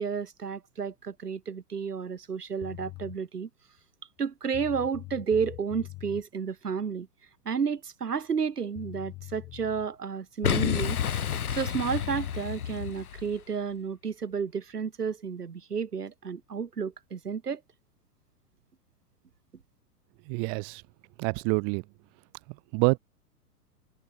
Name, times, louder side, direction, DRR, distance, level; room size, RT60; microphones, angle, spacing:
voice 1, 0.0-3.5 4.2-7.1 7.4-17.6, right 6 dB, 70° right, 2.9 m, -32 dB
sound 1, 2.6-3.2 4.2-4.3 4.5-6.2 8.4-8.5 8.7-9.9 10.7-12.4, left 20 dB, 30° left, 7.0 m, -43 dB
Boom, 10.4-13.4, left 8 dB, 65° left, 5.1 m, -30 dB
voice 2, 20.3-20.8 21.2-21.8 22.7-23.0, right 40 dB or more, 10° right, 0.4 m, -26 dB
figure-of-eight pair, 105°, 48 cm